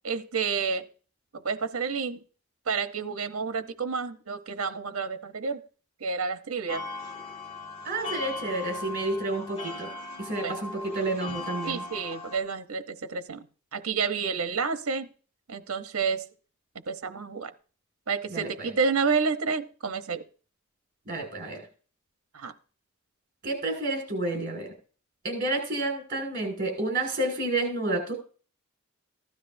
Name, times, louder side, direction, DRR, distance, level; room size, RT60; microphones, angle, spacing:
voice 1, 0.0-0.9 1.3-2.2 2.7-5.6 6.0-6.9 10.4-10.5 11.7-13.5 13.7-15.1 15.5-16.3 16.9-17.5 18.1-20.2 22.3-22.5, right 5 dB, 85° right, 0.9 m, -29 dB
sound 1, 6.7-12.4, left 3 dB, 30° left, 1.8 m, -38 dB
voice 2, 7.8-9.9 10.2-11.8 18.3-18.7 21.1-21.6 23.4-24.7 25.2-28.1, right 2 dB, 45° right, 5.7 m, -30 dB
15.5 x 12.5 x 2.6 m
head